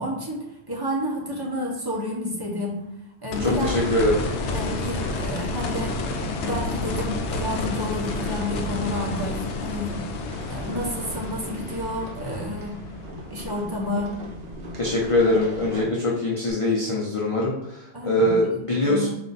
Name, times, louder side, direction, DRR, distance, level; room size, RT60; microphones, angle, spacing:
voice 1, 0.0-2.9 3.2-4.0 4.5-6.0 6.4-10.0 10.4-12.8 13.3-14.1 17.9-18.5 18.8-19.1, left 1 dB, 20° right, -3 dB, 0.9 m, -30 dB
sound 1, 3.3-14.2 16.5-16.6, left 2 dB, 80° left, 0.9 m, -30 dB
voice 2, 3.4-4.2 14.8-19.1, left 1 dB, 40° left, -4 dB, 0.5 m, -23 dB
sound 2, 10.3-15.8, right 1 dB, 60° right, 1.0 m, -38 dB
4.1 x 2.5 x 3.9 m, 0.86 s
omnidirectional pair, 1.2 m